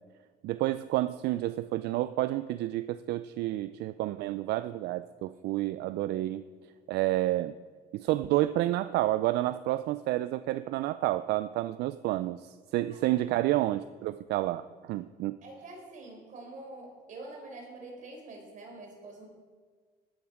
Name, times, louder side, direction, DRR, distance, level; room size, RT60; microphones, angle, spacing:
voice 1, 0.4-6.4 6.9-7.5 7.9-15.4, right 15 dB, 75° right, 13 dB, 0.4 m, -30 dB
voice 2, 12.9-13.3 15.4-19.3, right 2 dB, 50° right, 1 dB, 4.2 m, -46 dB
13.0 x 11.0 x 5.0 m, 1.5 s
cardioid pair, 110°, 17 cm